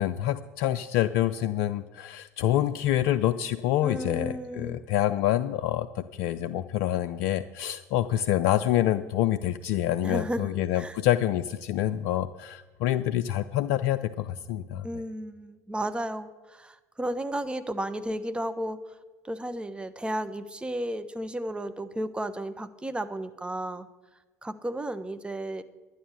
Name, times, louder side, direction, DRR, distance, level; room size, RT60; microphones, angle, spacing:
voice 1, 0.0-14.9, left 12 dB, 60° left, 12 dB, 0.5 m, -27 dB
voice 2, 3.8-4.8 10.0-11.0 14.8-19.0 19.2-23.9 24.4-25.6, right 1 dB, 10° right, 11 dB, 1.0 m, -33 dB
11.0 x 9.6 x 6.5 m, 1.2 s
figure-of-eight pair, 65°, 8 cm